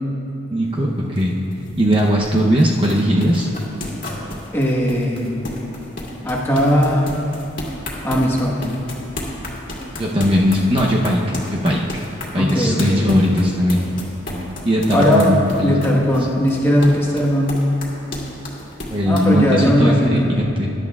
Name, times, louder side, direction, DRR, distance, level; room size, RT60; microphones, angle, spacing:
voice 1, 0.5-1.4 1.8-3.5 10.0-11.8 12.3-13.8 14.6-15.7 18.9-20.7, equal, 25° right, -2 dB, 0.7 m, -18 dB
sound 1, 0.6-19.7, left 1 dB, 45° left, 2.1 m, -33 dB
voice 2, 4.5-5.5 6.2-7.1 8.0-8.8 12.4-13.1 14.9-17.6 19.0-20.3, equal, 10° left, -3 dB, 1.3 m, -18 dB
21.0 x 11.0 x 2.4 m, 2.8 s
head